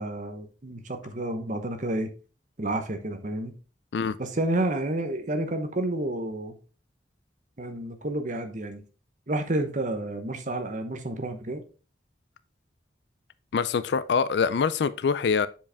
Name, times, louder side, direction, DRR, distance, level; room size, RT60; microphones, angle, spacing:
voice 1, 0.0-2.1 2.6-3.5 4.2-6.6 7.6-8.8 9.3-11.6, right 1 dB, 45° right, 1.0 m, -30 dB
voice 2, 13.5-15.5, left 5 dB, 70° left, 0.4 m, -24 dB
7.3 x 5.0 x 3.5 m
head